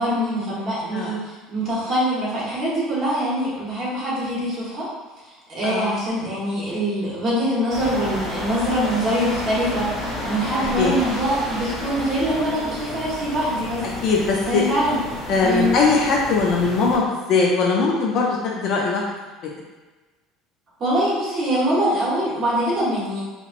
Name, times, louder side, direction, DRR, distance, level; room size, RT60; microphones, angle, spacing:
voice 1, 0.0-4.9 5.5-13.9 14.5-15.0 15.4-15.8 20.8-23.2, equal, 25° right, -8 dB, 1.2 m, -23 dB
sound 1, 7.7-17.0, left 1 dB, 15° left, 0.9 m, -31 dB
voice 2, 14.0-14.7 15.3-19.0, left 4 dB, 40° left, -2 dB, 0.4 m, -20 dB
3.9 x 2.9 x 2.5 m, 1.3 s
cardioid pair, 175°, 0 cm